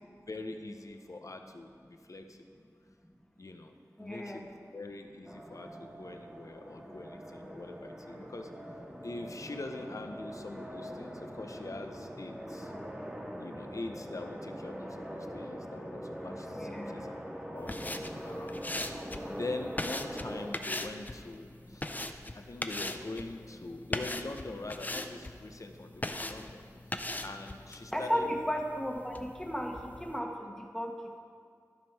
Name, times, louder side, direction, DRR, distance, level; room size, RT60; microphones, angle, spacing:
voice 1, 0.3-2.5 3.4-3.7 4.0-8.5 9.0-12.7 13.4-17.1 17.5-19.0 19.3-21.9 22.4-26.6 27.2-28.3, left 2 dB, 60° left, 5 dB, 0.7 m, -43 dB
voice 2, 4.0-4.4 16.5-16.9 27.9-30.9, equal, 10° left, 1 dB, 1.1 m, -34 dB
sound 1, 5.2-20.5, equal, 15° right, 1.4 m, -43 dB
sound 2, 17.6-30.2, left 1 dB, 25° left, 0.5 m, -40 dB
12.5 x 5.4 x 4.7 m, 2.3 s
wide cardioid pair, 50°, 6 cm